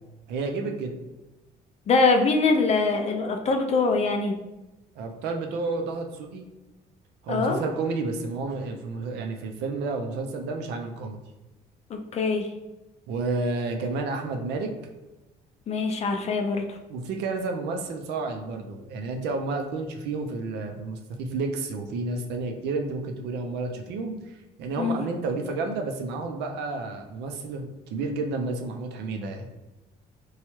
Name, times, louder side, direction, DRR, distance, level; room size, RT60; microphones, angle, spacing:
voice 1, 0.3-0.9 5.0-6.5 7.2-11.2 13.1-14.7 16.9-29.5, right 3 dB, 80° right, 4 dB, 0.5 m, -31 dB
voice 2, 1.9-4.3 7.3-7.6 11.9-12.5 15.7-16.8 24.8-25.0, left 3 dB, 40° left, 4 dB, 0.4 m, -23 dB
3.1 x 2.3 x 3.0 m, 1.0 s
cardioid pair, 110°, 17 cm